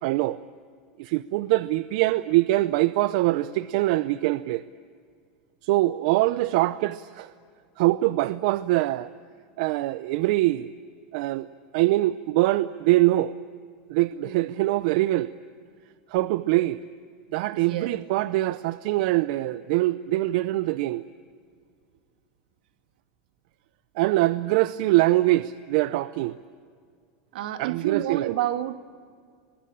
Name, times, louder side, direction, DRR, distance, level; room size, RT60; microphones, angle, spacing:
voice 1, 0.0-0.4 1.0-4.6 5.6-7.3 7.8-9.1 9.6-10.7 11.1-11.5 11.7-13.3 13.9-15.3 16.1-16.8 17.3-21.0 24.0-26.3 27.6-28.3, right 17 dB, 65° right, 0.6 m, -23 dB
voice 2, 17.5-18.0 27.3-28.8, right 12 dB, 85° right, 1.7 m, -29 dB
24.5 x 21.0 x 8.8 m
supercardioid pair, 135°, 5 cm